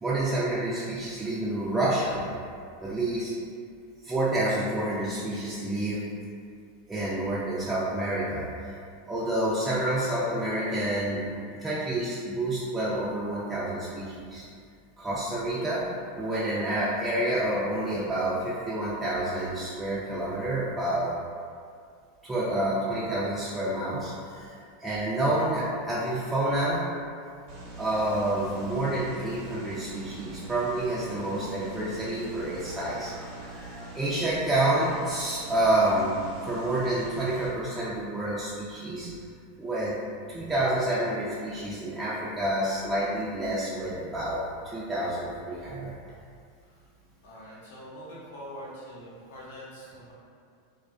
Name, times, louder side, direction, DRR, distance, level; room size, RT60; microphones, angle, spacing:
voice 1, 0.0-2.2 2.8-3.3 4.0-6.1 6.9-8.5 9.1-11.3 11.5-14.4 15.0-21.1 22.2-24.5 24.8-26.9 27.8-36.2 36.4-39.1 39.6-40.0 40.3-45.9, right 1 dB, 15° right, -9 dB, 0.4 m, -28 dB
sound 1, 27.5-37.5, right 2 dB, 55° right, 0.8 m, -43 dB
voice 2, 47.2-50.1, equal, 75° left, -7 dB, 0.8 m, -44 dB
2.3 x 2.2 x 2.5 m, 2.3 s
hypercardioid pair, 105°, 0 cm